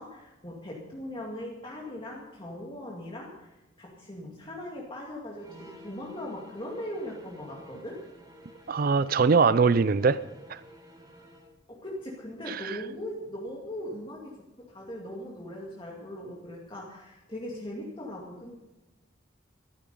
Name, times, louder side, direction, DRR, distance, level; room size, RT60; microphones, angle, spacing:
voice 1, 0.0-8.0 11.7-14.4 14.7-18.6, left 1 dB, 25° left, 2.2 m, -39 dB
sound 1, 5.4-11.5, equal, 20° right, 3.9 m, -52 dB
voice 2, 8.7-10.2 10.5-10.6 12.5-12.8, right 5 dB, 45° right, 0.4 m, -22 dB
14.5 x 13.5 x 5.3 m
head